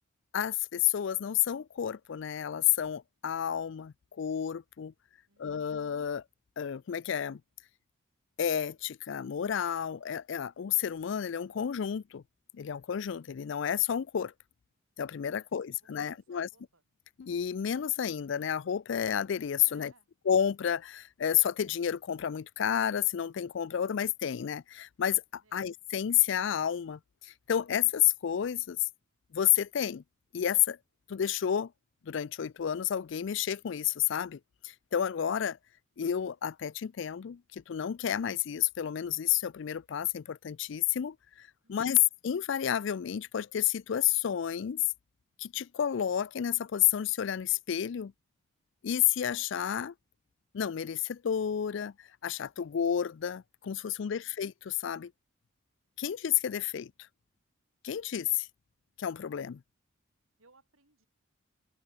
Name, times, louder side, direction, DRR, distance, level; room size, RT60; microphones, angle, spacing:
voice 1, 0.3-4.9 5.4-6.2 6.6-7.4 8.4-12.2 12.5-14.3 15.0-16.5 17.2-19.9 20.3-28.8 29.3-30.0 30.3-30.8 31.1-31.7 32.1-35.6 36.0-44.8 45.4-48.1 48.8-49.9 50.5-55.1 56.0-56.9 57.8-58.5 59.0-59.6, left 10 dB, 60° left, 0.4 m, -30 dB
voice 2, 5.3-5.9 15.3-16.8 19.6-20.1 25.4-25.6 41.6-42.0 54.0-54.4 60.4-61.1, right 3 dB, 85° right, 4.2 m, -66 dB
open air
head